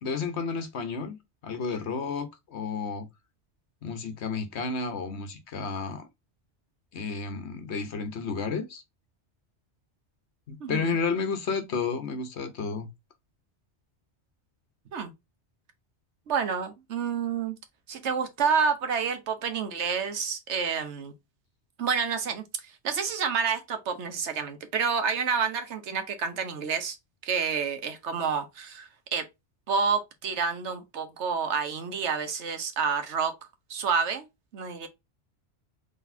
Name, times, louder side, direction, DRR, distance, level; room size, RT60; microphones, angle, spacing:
voice 1, 0.0-1.2 1.4-3.1 3.8-6.1 6.9-8.8 10.5-12.9, left 4 dB, 75° left, 1.2 m, -31 dB
voice 2, 10.6-11.0 14.9-15.1 16.3-17.6 17.9-21.1 21.8-27.0 27.2-29.3 29.7-33.3 33.7-34.3 34.5-34.9, right 6 dB, 85° right, 1.2 m, -29 dB
4.0 x 3.5 x 2.6 m
omnidirectional pair, 1.1 m